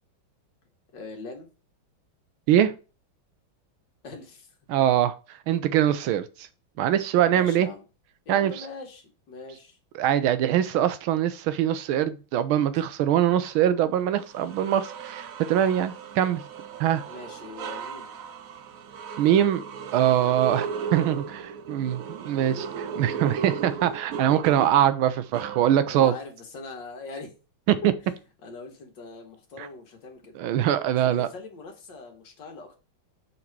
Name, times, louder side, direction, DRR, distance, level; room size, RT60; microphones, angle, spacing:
voice 1, 0.9-1.5 4.0-4.5 7.3-7.8 8.3-9.8 17.1-18.2 25.9-27.3 28.0-30.3 31.0-32.8, left 3 dB, 65° left, 2.0 m, -42 dB
voice 2, 4.7-5.1 5.5-6.3 6.8-7.7 8.3-8.5 9.9-16.4 16.8-17.0 19.2-19.6 19.9-26.1 27.7-27.8 30.4-31.3, right 11 dB, 85° right, 1.5 m, -23 dB
sound 1, 13.4-13.6 14.2-26.1, right 6 dB, 70° right, 0.8 m, -36 dB
5.8 x 4.0 x 6.0 m
omnidirectional pair, 2.2 m